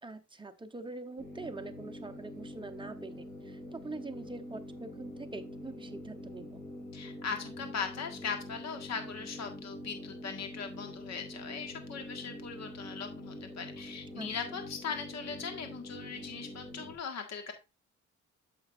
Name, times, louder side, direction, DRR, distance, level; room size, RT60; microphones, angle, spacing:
voice 1, 0.0-6.6 14.1-14.3, right 3 dB, 15° right, 6 dB, 0.9 m, -44 dB
sound 1, 1.2-16.9, left 1 dB, 30° left, 5.0 m, -45 dB
voice 2, 6.9-17.5, left 6 dB, 60° left, 5 dB, 1.8 m, -39 dB
8.6 x 7.0 x 2.6 m, 0.26 s
cardioid pair, 90°, 30 cm